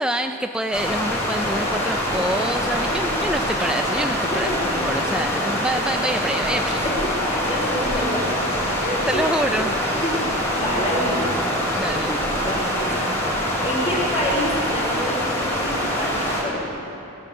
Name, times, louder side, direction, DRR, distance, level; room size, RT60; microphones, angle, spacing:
voice 1, 0.0-6.9 8.8-9.7 11.7-12.1, right 1 dB, 5° right, 5 dB, 0.3 m, -26 dB
sound 1, 0.7-16.4, equal, 10° left, 2.8 m, -24 dB
voice 2, 2.6-3.3 4.3-5.3 6.8-8.4 8.8-9.2 10.0-10.2 10.5-13.0 13.6-16.8, equal, 30° left, -6 dB, 3.4 m, -28 dB
17.5 x 10.0 x 7.9 m, 2.8 s
head